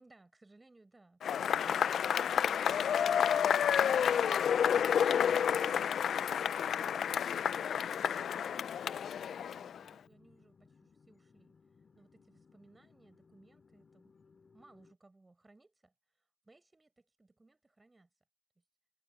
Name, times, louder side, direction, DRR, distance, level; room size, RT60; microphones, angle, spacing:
voice 1, 0.0-2.4 3.0-3.3 8.4-11.5 11.9-14.1 14.5-18.1 18.6-18.7, right 2 dB, 20° right, 6.7 m, -64 dB
Cheering / Applause / Crowd, 1.2-9.9, left 8 dB, 60° left, 0.5 m, -30 dB
sound 1, 2.7-14.9, left 5 dB, 35° left, 2.5 m, -65 dB
cardioid pair, 90°, 0 cm